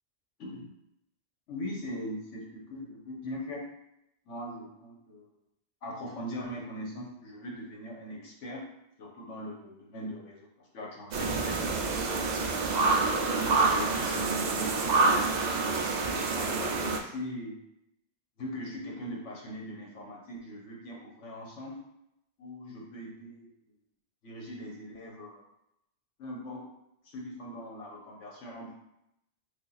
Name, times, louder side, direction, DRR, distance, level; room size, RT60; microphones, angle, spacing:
voice 1, 1.5-3.6 4.3-5.3 5.8-8.7 9.0-12.4 13.1-14.9 16.1-17.6 18.4-21.8 22.4-23.5 24.2-25.4 26.2-26.6 27.0-28.7, equal, 85° left, -2 dB, 1.3 m, -40 dB
sound 1, 11.1-17.0, right 3 dB, 60° right, 0.4 m, -27 dB
3.4 x 2.5 x 3.9 m, 0.83 s
omnidirectional pair, 1.2 m